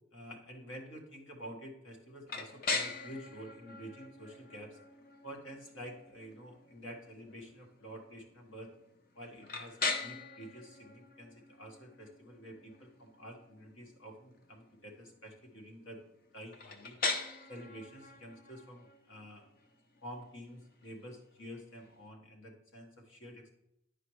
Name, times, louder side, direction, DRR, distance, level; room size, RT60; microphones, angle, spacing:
voice 1, 0.1-4.8 5.2-8.7 9.1-16.0 16.3-17.0 17.5-19.5 20.0-23.5, equal, 70° left, 1 dB, 1.5 m, -49 dB
sound 1, 2.3-22.0, left 3 dB, 45° left, 0.7 m, -42 dB
10.0 x 4.9 x 3.1 m, 0.81 s
head